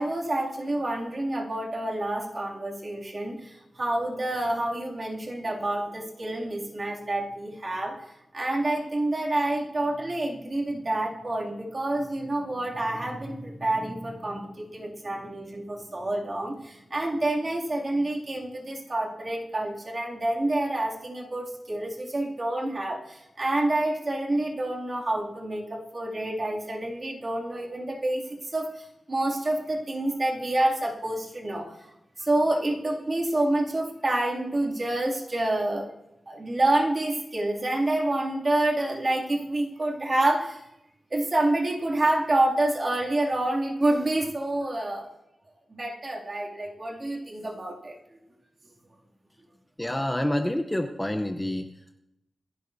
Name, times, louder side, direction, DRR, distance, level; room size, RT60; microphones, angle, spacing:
voice 1, 0.0-8.0 8.3-31.7 32.2-35.9 36.3-40.6 41.1-45.1 45.7-47.9, right 1 dB, 35° right, -3 dB, 2.6 m, -28 dB
voice 2, 49.8-51.7, left 1 dB, 10° left, 5 dB, 0.7 m, -27 dB
27.0 x 11.0 x 2.7 m, 0.87 s
wide cardioid pair, 135°, 0 cm